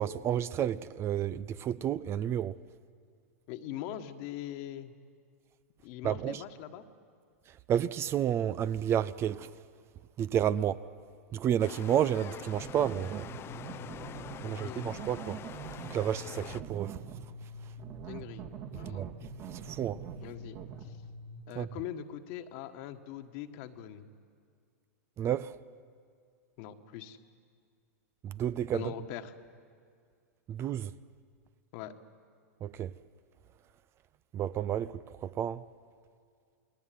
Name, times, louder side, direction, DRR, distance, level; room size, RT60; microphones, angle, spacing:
voice 1, 0.0-2.6 6.0-6.4 7.7-9.5 10.2-10.8 11.3-13.3 14.4-15.4 15.9-17.0 18.9-19.1 19.5-20.0 21.6-21.7 25.2-25.5 28.2-28.8 30.5-30.9 32.6-32.9 34.3-34.9 35.2-35.6, right 10 dB, 30° right, 0.6 m, -31 dB
voice 2, 3.5-4.9 5.8-6.8 14.4-14.9 18.0-19.1 20.2-20.9 21.5-24.1 26.6-27.2 28.7-29.3 31.7-31.9, left 11 dB, 55° left, 1.7 m, -42 dB
sound 1, 11.6-16.6, left 10 dB, 30° left, 0.7 m, -45 dB
sound 2, 12.5-21.4, right 5 dB, 50° right, 2.5 m, -44 dB
29.0 x 20.0 x 9.4 m
hypercardioid pair, 110°, 8 cm